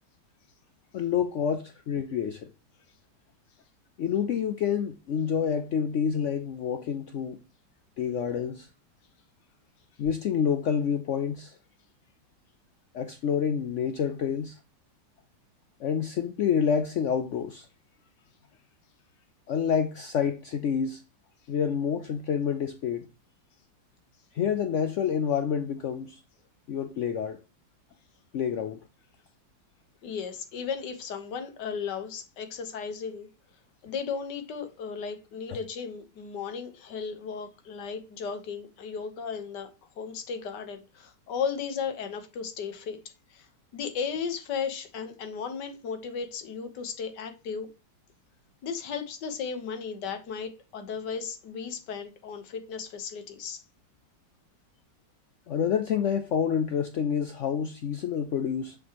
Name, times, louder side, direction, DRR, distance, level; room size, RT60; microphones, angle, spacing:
voice 1, 0.9-2.5 4.0-7.4 8.0-8.7 10.0-11.6 12.9-14.6 15.8-17.7 19.5-21.0 21.5-23.1 24.3-26.2 26.7-27.4 28.3-28.8 55.5-58.8, left 7 dB, 85° left, 0.6 m, -28 dB
voice 2, 30.0-33.3 33.8-39.7 39.9-43.0 43.3-43.5 43.7-47.7 48.6-53.6, left 6 dB, 70° left, 1.6 m, -35 dB
6.8 x 6.1 x 2.9 m
omnidirectional pair, 2.0 m